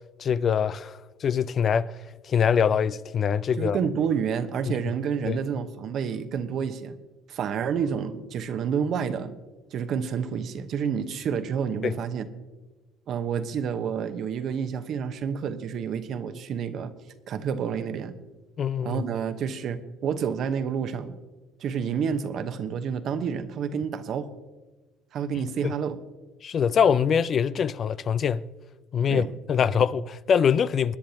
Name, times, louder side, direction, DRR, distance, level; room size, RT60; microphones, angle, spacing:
voice 1, 0.2-1.9 2.3-3.8 5.3-5.4 11.8-11.9 18.6-19.0 25.6-25.7 26.4-28.4 28.9-31.0, left 7 dB, 45° left, 0.4 m, -23 dB
voice 2, 3.6-6.9 7.3-9.3 9.7-12.3 13.1-16.9 17.3-18.2 18.8-21.2 21.6-24.3 25.1-26.0 29.1-29.3, right 7 dB, 55° right, 1.0 m, -29 dB
23.0 x 10.0 x 2.9 m
supercardioid pair, 80°, 0 cm